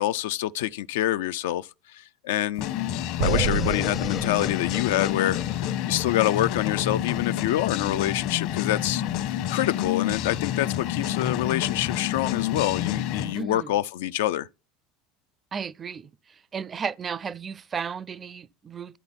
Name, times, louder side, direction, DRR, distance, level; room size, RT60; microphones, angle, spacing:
voice 1, 0.0-2.7 3.2-14.5, left 13 dB, 90° left, 0.4 m, -26 dB
sound 1, 2.6-13.3, left 11 dB, 65° left, 1.0 m, -29 dB
sound 2, 3.2-7.0, left 8 dB, 30° left, 0.5 m, -36 dB
Explosion, 3.2-6.5, right 10 dB, 75° right, 0.8 m, -31 dB
voice 2, 13.3-13.7 15.5-16.1 16.5-19.0, right 6 dB, 25° right, 0.4 m, -34 dB
11.5 x 4.0 x 5.7 m
supercardioid pair, 135°, 0 cm